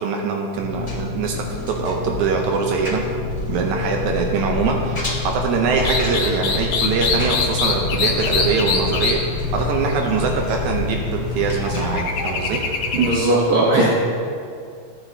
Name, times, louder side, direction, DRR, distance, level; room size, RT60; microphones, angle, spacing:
voice 1, 0.0-3.0 3.5-9.3 9.5-12.6, right 5 dB, 85° right, 2 dB, 2.2 m, -23 dB
Engine, 0.6-12.2, left 3 dB, 10° left, 1.8 m, -27 dB
sound 1, 5.8-13.2, left 4 dB, 85° left, 2.5 m, -25 dB
voice 2, 12.9-13.9, right 2 dB, 50° right, -5 dB, 1.1 m, -17 dB
15.0 x 8.9 x 2.8 m, 2.3 s
omnidirectional pair, 3.3 m